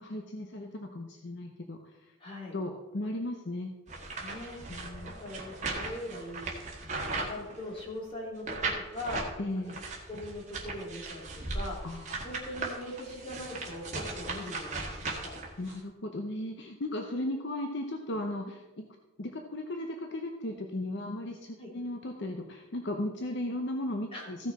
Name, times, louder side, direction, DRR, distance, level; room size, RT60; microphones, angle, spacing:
voice 1, 0.0-2.2 2.5-3.7 4.7-5.2 9.4-9.8 11.8-12.1 15.6-18.9 19.2-24.5, left 1 dB, 60° left, 3 dB, 0.8 m, -36 dB
voice 2, 2.2-2.5 4.2-4.6 5.0-6.5 6.8-8.5 8.9-9.4 10.1-11.8 12.2-15.3 21.6-21.7 24.1-24.2, left 1 dB, 25° left, -4 dB, 3.1 m, -41 dB
sound 1, 3.9-7.9 8.4-9.3 9.7-15.7, right 3 dB, 35° right, 1.7 m, -37 dB
15.0 x 6.2 x 4.2 m, 1.1 s
head